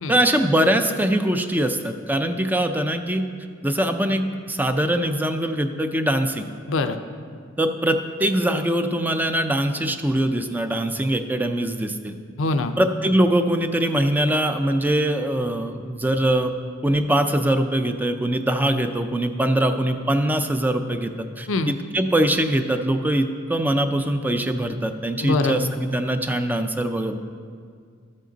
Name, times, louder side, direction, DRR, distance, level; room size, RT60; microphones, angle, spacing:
voice 1, 0.1-3.2 3.6-6.5 7.6-12.2 12.8-16.5 16.8-27.2, right 1 dB, 10° right, 7 dB, 0.4 m, -22 dB
voice 2, 6.7-7.0 12.4-12.8 21.5-21.7 25.2-25.8, left 3 dB, 70° left, 9 dB, 0.5 m, -23 dB
12.5 x 7.6 x 3.9 m, 2.1 s
head